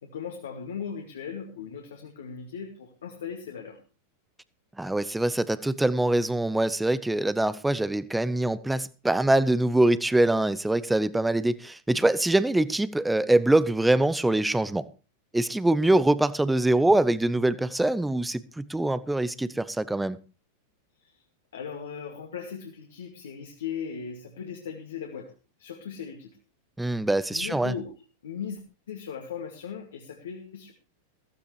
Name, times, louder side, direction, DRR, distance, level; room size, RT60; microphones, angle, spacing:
voice 1, 0.0-3.8 21.0-21.2 21.5-25.3 25.6-26.4 27.3-27.9 28.2-28.6 28.9-30.7, left 7 dB, 65° left, 2.2 m, -38 dB
voice 2, 4.8-14.8 15.3-20.2 26.8-27.7, right 1 dB, 5° right, 0.7 m, -24 dB
15.5 x 15.5 x 3.2 m
figure-of-eight pair, 90°, 0 cm